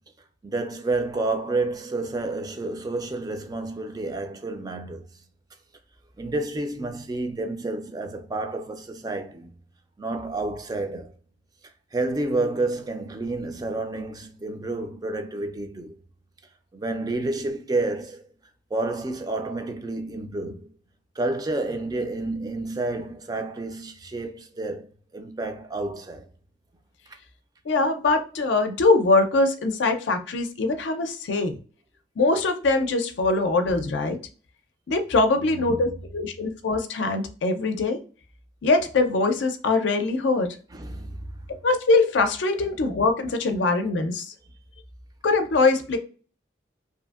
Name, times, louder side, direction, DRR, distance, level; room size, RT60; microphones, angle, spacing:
voice 1, 0.4-5.2 6.2-9.5 10.0-11.1 11.9-15.9 16.7-18.3 18.7-20.7 21.2-24.9 25.1-26.3 35.4-35.9 40.7-41.2, right 2 dB, 20° right, 0.3 m, -30 dB
voice 2, 27.7-31.6 32.2-34.2 34.9-38.0 38.6-40.5 41.6-44.3 45.2-46.0, left 3 dB, 75° left, 0.4 m, -22 dB
2.7 x 2.5 x 2.3 m
head